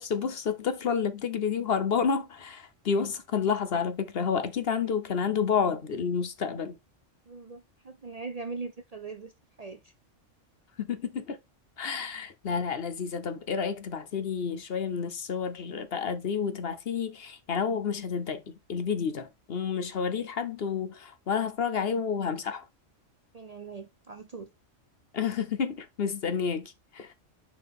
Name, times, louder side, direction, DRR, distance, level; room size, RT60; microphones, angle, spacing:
voice 1, 0.0-6.8 10.8-11.4 11.8-18.4 18.7-22.6 25.1-27.1, left 6 dB, 55° left, 1.0 m, -30 dB
voice 2, 7.3-9.3 9.6-9.9 23.3-24.5, right 4 dB, 40° right, 0.6 m, -40 dB
6.9 x 4.5 x 3.6 m
omnidirectional pair, 1.3 m